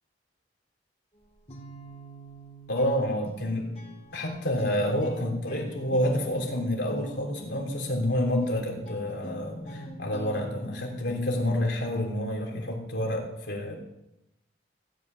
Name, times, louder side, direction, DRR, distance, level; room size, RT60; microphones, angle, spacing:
Guitar, 1.1-12.4, equal, 35° left, 4.0 m, -44 dB
voice 1, 2.7-3.7 4.1-13.8, left 1 dB, 75° left, 1 dB, 3.3 m, -28 dB
16.5 x 5.9 x 9.1 m, 0.88 s
head